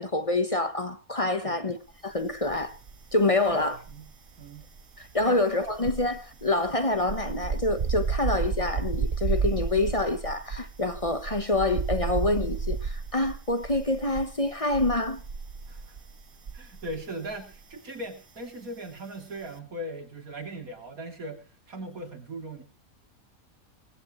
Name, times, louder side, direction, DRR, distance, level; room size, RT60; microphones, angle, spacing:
voice 1, 0.0-2.8 3.1-3.8 5.0-15.2, left 2 dB, 25° left, 1.1 m, -27 dB
sound 1, 2.4-3.2 3.5-17.0 17.3-17.6, right 5 dB, 40° right, 1.0 m, -32 dB
voice 2, 3.5-4.1 4.4-4.7 5.2-5.4 15.7-15.9 16.5-22.6, right 1 dB, 75° right, 3.5 m, -39 dB
19.0 x 15.0 x 3.1 m
omnidirectional pair, 1.5 m